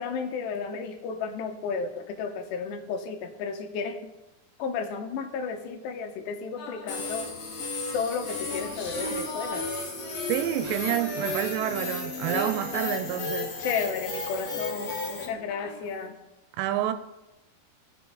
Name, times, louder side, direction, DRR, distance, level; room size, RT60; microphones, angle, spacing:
voice 1, 0.0-4.1 4.6-7.3 7.9-9.7 12.3-12.5 13.6-16.2, left 5 dB, 85° left, 3.1 m, -33 dB
sound 1, 6.6-7.4 8.1-13.9 14.2-16.1, left 3 dB, 60° left, 2.7 m, -41 dB
sound 2, 6.9-15.3, left 2 dB, 45° left, 2.7 m, -34 dB
Zipper (clothing), 8.4-9.3 10.3-10.4 10.5-10.9 11.6-11.9, equal, 40° right, 1.0 m, -46 dB
voice 2, 10.3-13.5 16.6-16.9, right 12 dB, 85° right, 2.9 m, -28 dB
17.5 x 6.9 x 3.9 m
omnidirectional pair, 4.9 m